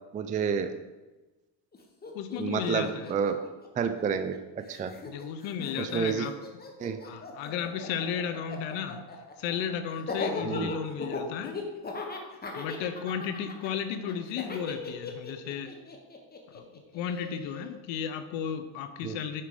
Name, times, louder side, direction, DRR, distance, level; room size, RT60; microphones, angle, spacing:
voice 1, 0.1-0.7 2.4-3.4 3.8-4.9 5.8-6.3 6.8-7.0 10.4-10.7 19.0-19.1, right 6 dB, 20° right, 8 dB, 0.3 m, -29 dB
Laughter, 1.7-1.8 2.0-4.4 4.7-17.7, left 3 dB, 20° left, 1.0 m, -39 dB
voice 2, 2.1-3.1 5.0-6.3 7.0-9.0 9.4-11.6 12.5-15.7 16.5-16.6 16.9-19.4, left 8 dB, 75° left, 9 dB, 0.8 m, -34 dB
5.9 x 4.8 x 4.8 m, 1.2 s
cardioid pair, 100°, 46 cm